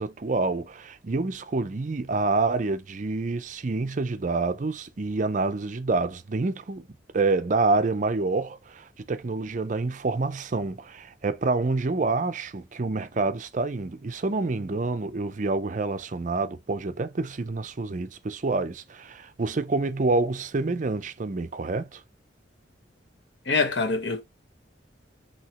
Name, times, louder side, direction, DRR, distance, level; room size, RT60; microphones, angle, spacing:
voice 1, 0.0-6.9 7.1-22.0, right 3 dB, 40° right, 0.5 m, -27 dB
voice 2, 23.5-24.2, left 4 dB, 70° left, 0.9 m, -24 dB
5.8 x 2.8 x 2.9 m
head